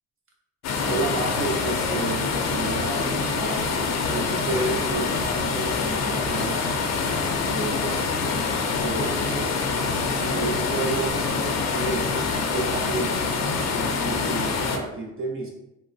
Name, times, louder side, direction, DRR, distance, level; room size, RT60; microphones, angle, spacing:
sound 1, 0.6-14.8, left 4 dB, 60° left, 0.6 m, -25 dB
voice 1, 0.8-6.7 7.4-8.1 8.6-9.6 10.0-13.2 13.9-15.5, right 2 dB, 45° right, -1 dB, 0.9 m, -31 dB
3.5 x 2.2 x 2.6 m, 0.88 s
cardioid pair, 90°, 30 cm